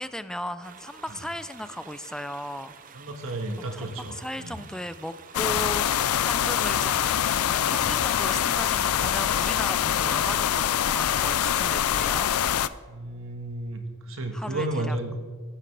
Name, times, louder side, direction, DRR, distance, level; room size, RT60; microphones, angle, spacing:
voice 1, 0.0-2.7 3.6-7.1 7.7-12.3 14.3-15.0, left 1 dB, 5° left, 12 dB, 0.4 m, -36 dB
sound 1, 0.6-8.0, right 6 dB, 40° right, 0.6 m, -48 dB
voice 2, 2.9-4.6 5.6-5.7 7.8-8.0 12.9-15.2, right 1 dB, 70° right, 4 dB, 1.6 m, -33 dB
sound 2, 5.3-12.7, left 10 dB, 85° left, 0.4 m, -24 dB
14.5 x 12.5 x 3.4 m, 1.5 s
head